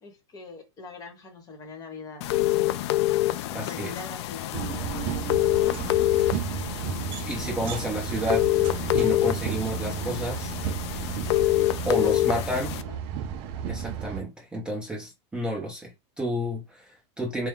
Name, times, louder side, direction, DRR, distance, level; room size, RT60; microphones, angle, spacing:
voice 1, 0.0-2.9 3.7-5.7 12.0-13.0, left 4 dB, 25° left, 1.1 m, -43 dB
sound 1, 2.2-12.8, left 16 dB, 65° left, 0.4 m, -26 dB
voice 2, 3.5-3.9 7.3-8.5 8.9-10.5 11.8-12.8 13.7-17.5, right 1 dB, 5° right, 0.8 m, -31 dB
sound 2, 4.5-14.2, right 8 dB, 40° right, 0.5 m, -33 dB
4.3 x 2.2 x 3.6 m
supercardioid pair, 150°, 15 cm